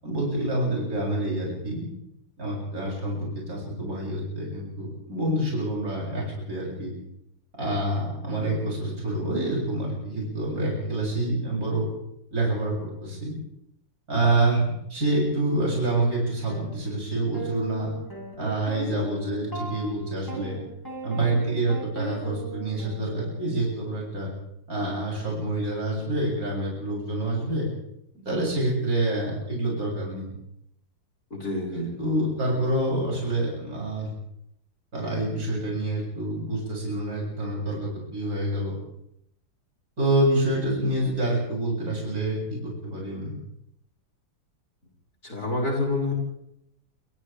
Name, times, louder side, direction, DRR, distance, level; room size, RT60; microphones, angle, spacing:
voice 1, 0.0-1.9 2.4-6.9 7.6-11.9 12.3-13.4 14.1-14.6 14.9-17.9 18.4-20.6 21.0-24.3 24.7-27.7 28.2-30.3 31.7-34.1 34.9-38.8 40.0-43.3, right 1 dB, 45° right, -4 dB, 8.1 m, -27 dB
sound 1, 16.5-16.7 17.3-23.7, right 1 dB, 10° left, 6.8 m, -37 dB
voice 2, 31.3-31.9 45.2-46.1, left 2 dB, 50° left, -1 dB, 6.4 m, -28 dB
29.5 x 26.0 x 3.5 m, 0.76 s
omnidirectional pair, 2.1 m